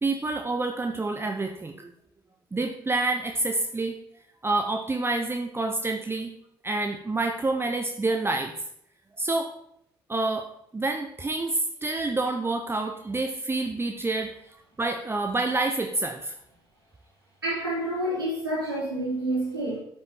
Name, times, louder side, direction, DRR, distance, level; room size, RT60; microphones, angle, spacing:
voice 1, 0.0-1.9 2.5-4.0 4.4-6.3 6.6-8.5 9.2-9.5 10.1-14.3 14.8-16.3, right 2 dB, 20° right, 4 dB, 0.9 m, -28 dB
voice 2, 17.4-19.8, right 1 dB, 90° right, -9 dB, 3.6 m, -28 dB
11.5 x 6.2 x 4.4 m, 0.71 s
figure-of-eight pair, 45°, 12 cm